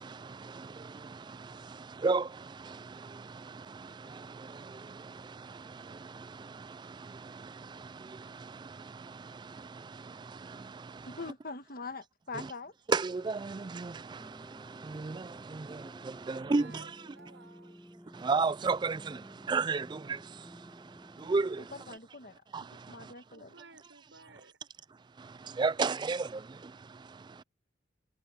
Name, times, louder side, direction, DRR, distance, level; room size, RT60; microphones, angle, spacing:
voice 1, 0.0-11.2 12.3-12.5 12.9-16.9 18.1-22.0 22.5-23.1 25.2-27.4, right 4 dB, 25° right, 0.3 m, -35 dB
voice 2, 11.1-12.7 21.7-22.4 22.9-23.5, left 3 dB, 50° left, 1.7 m, -43 dB
sound 1, 14.2-22.0, equal, ahead, 1.5 m, -54 dB
voice 3, 16.2-17.8 23.3-24.5, right 3 dB, 75° right, 6.0 m, -56 dB
head